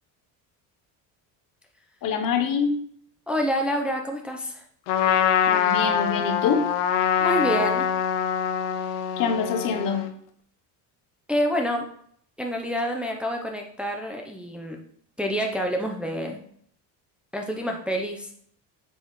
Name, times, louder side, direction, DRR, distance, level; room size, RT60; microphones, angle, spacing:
voice 1, 2.0-2.8 5.5-6.7 9.2-10.1, left 6 dB, 55° left, 7 dB, 1.1 m, -25 dB
voice 2, 3.3-4.6 7.2-7.9 11.3-11.8 12.4-14.8 15.2-16.4 17.3-18.3, equal, 5° right, 1 dB, 0.7 m, -27 dB
Trumpet, 4.9-10.1, left 8 dB, 75° left, 0.9 m, -24 dB
8.8 x 5.4 x 3.2 m, 0.63 s
cardioid pair, 145°, 42 cm